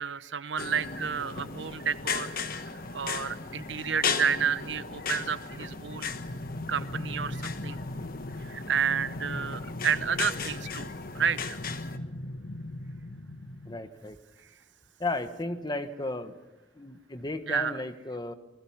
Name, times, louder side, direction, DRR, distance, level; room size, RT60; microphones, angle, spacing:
voice 1, 0.0-2.4 2.9-6.1 6.7-7.8 8.4-11.6 17.5-17.8, right 7 dB, 90° right, 14 dB, 0.9 m, -31 dB
sound 1, 0.6-12.0, left 5 dB, 55° left, 1.2 m, -36 dB
sound 2, 5.8-13.8, left 1 dB, 80° left, 1.2 m, -40 dB
voice 2, 13.6-14.2 15.0-16.4 16.7-18.3, left 2 dB, 25° left, 10 dB, 1.2 m, -34 dB
28.0 x 20.5 x 5.8 m, 1.1 s
head